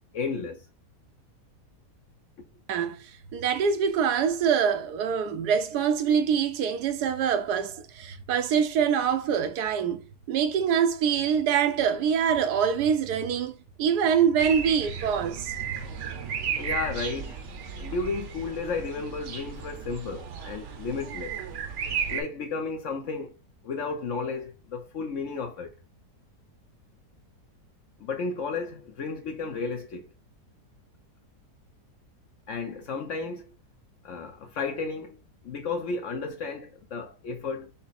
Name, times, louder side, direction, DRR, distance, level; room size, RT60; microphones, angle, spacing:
voice 1, 0.1-0.6 16.6-17.4 17.8-21.4 22.1-23.4 23.6-25.7 28.0-30.1 32.5-33.5 34.0-35.2 35.4-37.7, left 4 dB, 60° left, 0.9 m, -33 dB
voice 2, 2.7-10.0 10.3-15.5, right 7 dB, 80° right, 1.2 m, -25 dB
sound 1, 14.4-22.2, right 7 dB, 55° right, 0.9 m, -34 dB
5.5 x 2.0 x 4.0 m
omnidirectional pair, 1.7 m